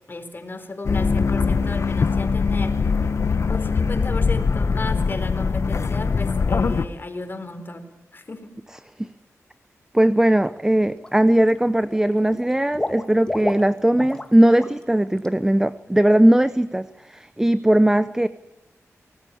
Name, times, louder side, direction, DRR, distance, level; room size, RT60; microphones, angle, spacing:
voice 1, 0.1-2.9 3.5-7.8 8.1-8.6, left 3 dB, 40° left, 7 dB, 4.2 m, -34 dB
sound 1, 0.9-6.9, left 5 dB, 55° left, 1.2 m, -22 dB
voice 2, 9.9-18.3, right 1 dB, 10° right, 14 dB, 0.7 m, -19 dB
Water / Liquid, 10.2-10.5 10.8-11.5 11.8-14.3 14.6-14.8 15.2-15.3, left 1 dB, 15° left, 2.5 m, -31 dB
25.5 x 19.0 x 7.1 m, 1.1 s
wide cardioid pair, 90°, 6 cm